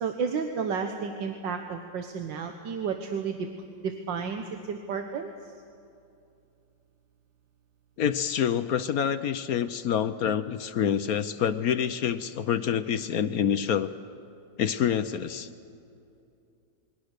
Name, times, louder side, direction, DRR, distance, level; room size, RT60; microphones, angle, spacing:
voice 1, 0.0-3.4 3.8-5.3, right 6 dB, 85° right, 5 dB, 1.8 m, -32 dB
voice 2, 8.0-13.9 14.6-15.5, left 8 dB, 65° left, 12 dB, 1.1 m, -27 dB
27.5 x 22.0 x 6.6 m, 2.6 s
omnidirectional pair, 1.9 m